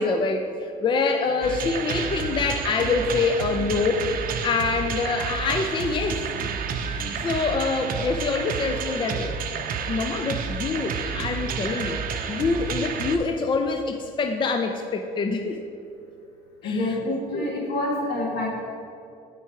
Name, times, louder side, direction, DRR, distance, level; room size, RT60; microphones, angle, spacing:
voice 1, 0.0-6.5 6.8-9.4 9.9-15.6 16.6-16.9 17.3-17.5, left 4 dB, 30° left, 6 dB, 0.4 m, -26 dB
sound 1, 1.4-13.2, right 6 dB, 60° right, 0.6 m, -30 dB
voice 2, 16.6-18.5, left 1 dB, 75° left, -2 dB, 2.0 m, -27 dB
9.2 x 4.6 x 4.6 m, 2.6 s
cardioid pair, 110°, 17 cm